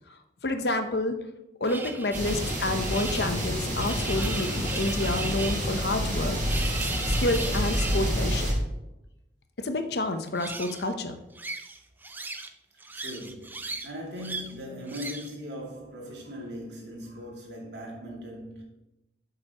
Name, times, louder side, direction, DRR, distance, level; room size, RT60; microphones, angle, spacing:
voice 1, 0.4-1.2 1.6-6.4 7.1-8.5 9.6-11.2, left 2 dB, 70° left, 0.8 m, -29 dB
sound 1, 1.7-8.1 10.3-10.9 11.4-12.5 12.8-13.9 14.2-14.5 14.9-15.3, right 3 dB, 10° right, 0.4 m, -37 dB
sound 2, 2.1-8.5, equal, 40° right, 2.5 m, -28 dB
voice 2, 12.9-18.6, equal, 80° right, 2.3 m, -39 dB
8.9 x 7.8 x 3.0 m
head